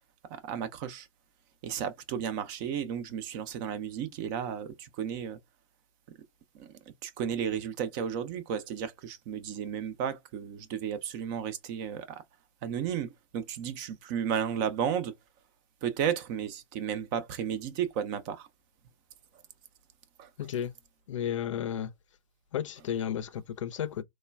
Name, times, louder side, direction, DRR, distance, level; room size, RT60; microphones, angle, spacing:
voice 1, 0.5-1.1 1.6-5.4 6.6-6.7 7.0-12.1 12.6-15.1 15.8-18.5 20.2-20.3, right 8 dB, 35° right, 0.5 m, -33 dB
voice 2, 20.4-20.7 21.1-21.9 22.5-24.0, left 9 dB, 60° left, 0.4 m, -33 dB
3.2 x 2.1 x 2.2 m
figure-of-eight pair, 115°, 18 cm